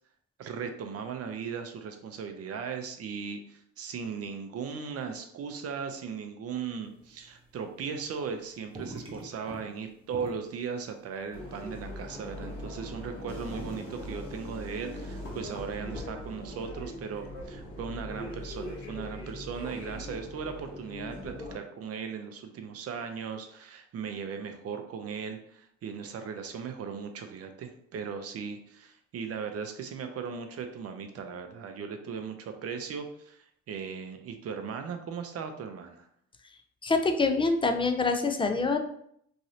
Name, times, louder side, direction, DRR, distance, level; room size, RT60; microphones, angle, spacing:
voice 1, 0.4-36.1, right 6 dB, 55° right, 6 dB, 0.5 m, -38 dB
sound 1, 6.8-7.5 7.8-8.4 8.6-9.7 10.1-13.0 13.3-14.1, right 2 dB, 15° right, 0.7 m, -44 dB
sound 2, 11.3-21.6, left 1 dB, 45° left, 1.1 m, -41 dB
voice 2, 36.8-38.8, left 3 dB, 20° left, 6 dB, 0.3 m, -25 dB
3.1 x 2.6 x 2.7 m, 0.69 s
cardioid pair, 90°, 30 cm